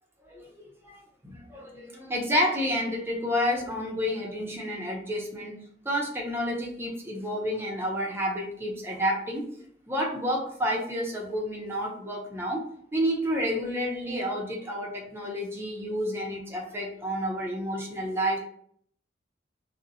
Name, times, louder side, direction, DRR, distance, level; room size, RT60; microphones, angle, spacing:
voice 1, 0.8-5.5 5.8-9.4 9.9-12.6 12.9-18.4, equal, 15° right, -1 dB, 0.5 m, -30 dB
2.5 x 2.0 x 2.6 m, 0.63 s
head